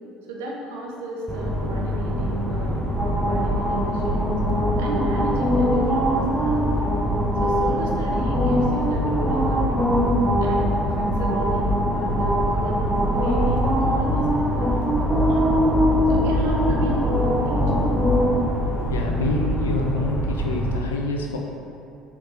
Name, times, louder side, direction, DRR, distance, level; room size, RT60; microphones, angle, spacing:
voice 1, 0.3-2.8 3.2-4.4 4.8-6.9 7.4-10.0 10.4-14.8 15.3-15.7 16.1-17.9, right 1 dB, 80° right, -2 dB, 0.5 m, -33 dB
sound 1, 1.3-20.8, equal, 5° right, 0.6 m, -22 dB
voice 2, 18.8-21.4, left 2 dB, 90° left, 1 dB, 0.3 m, -27 dB
3.2 x 3.1 x 2.9 m, 2.6 s
hypercardioid pair, 65°, 0 cm